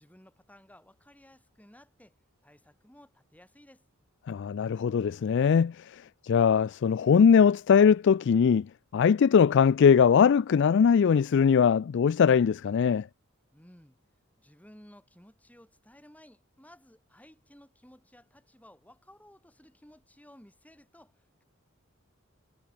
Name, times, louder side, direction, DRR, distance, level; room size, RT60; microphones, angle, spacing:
voice 1, 0.0-2.1 2.4-3.9 13.5-14.0 14.4-21.4, left 1 dB, 5° left, 6.0 m, -56 dB
voice 2, 4.3-13.1, left 7 dB, 55° left, 0.3 m, -21 dB
head